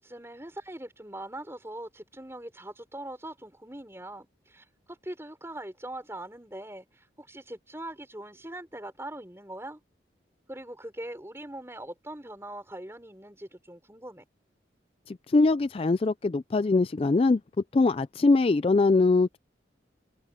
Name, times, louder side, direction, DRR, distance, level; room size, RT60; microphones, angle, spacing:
voice 1, 0.0-9.8 10.5-14.2, right 1 dB, 15° right, 5.0 m, -42 dB
voice 2, 15.1-17.4 17.7-19.4, left 3 dB, 30° left, 0.3 m, -22 dB
head